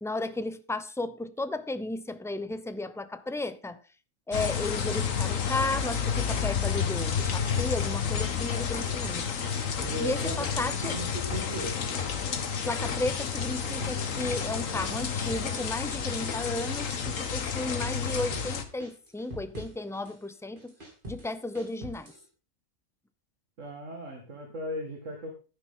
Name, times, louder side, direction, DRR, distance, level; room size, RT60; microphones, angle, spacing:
voice 1, 0.0-3.8 4.3-9.3 10.0-10.9 12.6-20.7 21.1-22.1, left 2 dB, 5° left, 11 dB, 0.4 m, -34 dB
sound 1, 4.3-18.6, left 7 dB, 70° left, 1.6 m, -30 dB
sound 2, 6.3-7.8 8.1-9.3 9.5-10.5 10.8-12.3 12.5-17.3 17.5-18.5 18.8-20.2 20.6-22.3, equal, 40° right, 3.0 m, -44 dB
voice 2, 9.8-11.8 23.6-25.3, equal, 65° right, 2 dB, 2.4 m, -37 dB
11.5 x 9.9 x 3.8 m, 0.34 s
omnidirectional pair, 1.4 m